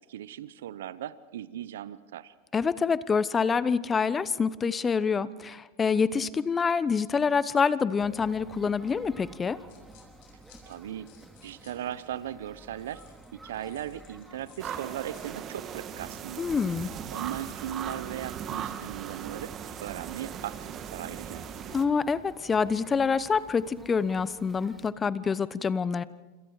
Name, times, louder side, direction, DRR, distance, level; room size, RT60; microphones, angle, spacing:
voice 1, 0.1-2.3 10.7-11.1 11.4-13.0 13.3-16.4 17.1-21.4, right 11 dB, 75° right, 17 dB, 0.8 m, -38 dB
voice 2, 2.5-9.6 16.4-16.9 21.7-26.0, left 5 dB, 20° left, 17 dB, 1.0 m, -26 dB
sound 1, 8.0-24.9, right 1 dB, 5° right, 2.8 m, -52 dB
sound 2, 9.4-12.2 12.8-15.5, left 9 dB, 60° left, 6.9 m, -60 dB
sound 3, 14.6-21.9, right 9 dB, 35° right, 1.7 m, -38 dB
28.0 x 26.5 x 4.9 m, 1.2 s
hypercardioid pair, 100°, 0 cm